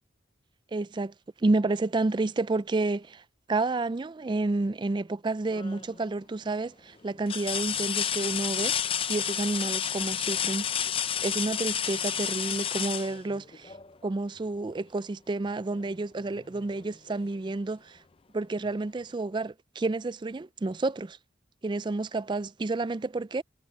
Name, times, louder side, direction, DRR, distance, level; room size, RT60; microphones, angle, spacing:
voice 1, 0.7-3.2 3.5-8.7 9.1-10.7 11.2-13.7 14.0-18.0 18.3-21.2 21.6-23.4, right 2 dB, 25° right, 0.4 m, -30 dB
sound 1, 5.5-6.0 6.5-6.6 7.3-13.9 15.7-15.9 16.3-17.4 18.7-18.8, left 9 dB, 30° left, 0.5 m, -31 dB
head